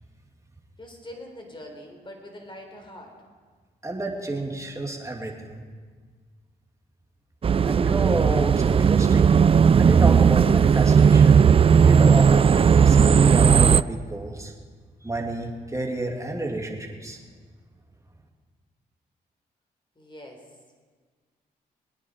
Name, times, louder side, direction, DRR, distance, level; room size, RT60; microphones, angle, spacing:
voice 1, 0.8-3.2 20.0-20.6, left 1 dB, 25° left, 3 dB, 3.9 m, -43 dB
voice 2, 3.8-5.6 7.6-9.5 9.8-11.4 11.9-14.5 15.0-17.2, right 2 dB, 15° right, 0 dB, 2.7 m, -30 dB
sound 1, 7.4-13.8, right 6 dB, 30° right, 0.3 m, -16 dB
22.0 x 9.7 x 5.1 m, 1.5 s
supercardioid pair, 55°, 18 cm